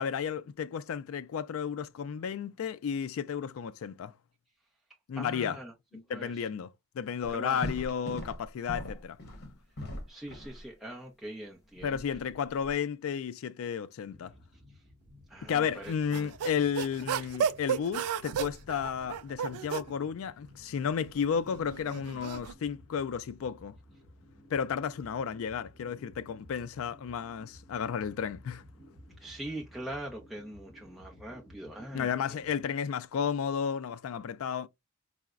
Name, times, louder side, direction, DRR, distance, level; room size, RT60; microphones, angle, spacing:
voice 1, 0.0-4.1 5.1-5.6 5.9-9.2 11.8-14.3 15.5-23.8 24.5-28.6 31.9-34.7, left 7 dB, 65° left, 0.3 m, -33 dB
voice 2, 5.1-5.7 6.1-6.5 7.3-7.7 10.1-12.0 14.7-14.8 15.3-16.3 29.2-32.1, right 1 dB, ahead, 0.5 m, -42 dB
sound 1, 7.2-10.6 11.8-12.7, equal, 50° left, 1.0 m, -40 dB
sound 2, 14.1-32.6, left 1 dB, 15° left, 1.5 m, -55 dB
sound 3, 15.8-19.9 20.8-22.5, right 7 dB, 90° right, 0.3 m, -33 dB
4.7 x 2.0 x 2.3 m
head